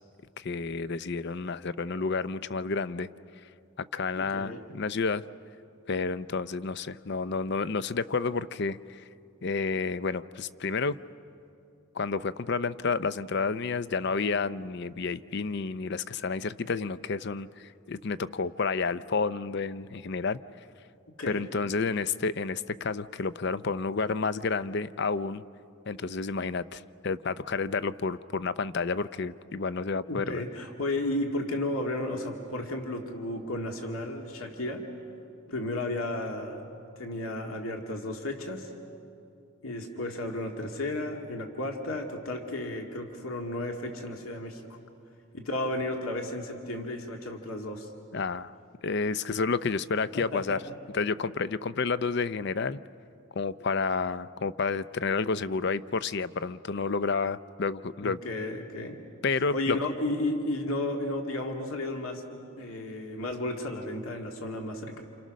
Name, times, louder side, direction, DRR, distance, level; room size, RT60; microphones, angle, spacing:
voice 1, 0.4-3.1 3.8-5.2 5.9-9.0 9.4-11.0 11.9-20.4 21.3-25.4 25.9-30.4 48.1-48.5 48.8-50.6 50.9-52.8 53.4-58.2 59.2-59.8, left 4 dB, 50° left, 15 dB, 0.5 m, -30 dB
voice 2, 4.2-4.6 21.2-21.4 30.1-34.8 35.5-36.7 37.0-38.7 39.6-44.6 45.3-47.9 50.1-50.6 58.0-59.0 59.5-65.0, left 1 dB, 75° left, 2 dB, 2.1 m, -33 dB
29.5 x 28.5 x 6.4 m, 2.6 s
head